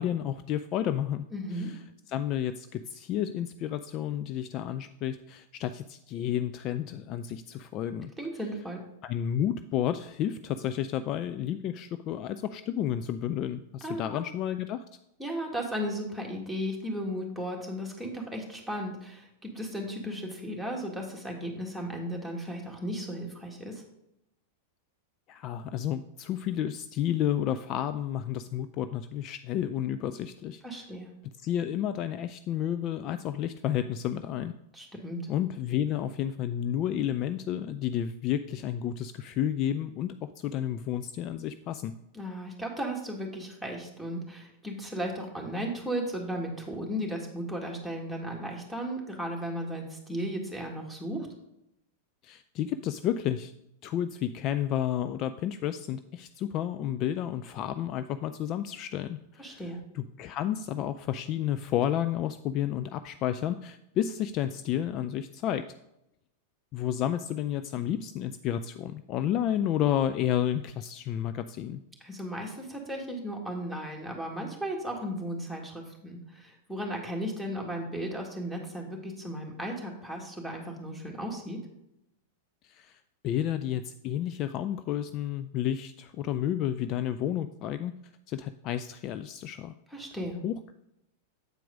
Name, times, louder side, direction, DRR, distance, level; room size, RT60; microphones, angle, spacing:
voice 1, 0.0-1.3 1.5-1.8 2.1-8.1 9.0-14.8 25.3-30.9 31.4-34.5 35.3-41.9 52.2-53.5 53.8-65.6 66.7-71.8 82.6-83.0 83.2-87.9 88.3-89.7 90.4-90.7, left 10 dB, 40° left, 10 dB, 0.3 m, -31 dB
voice 2, 1.3-1.7 8.2-8.8 13.8-14.2 15.2-23.8 30.6-31.1 34.7-35.2 42.1-51.3 59.4-59.8 72.0-81.6 89.9-90.4, equal, ahead, -2 dB, 1.9 m, -35 dB
8.1 x 4.6 x 5.1 m, 0.84 s
hypercardioid pair, 95°, 0 cm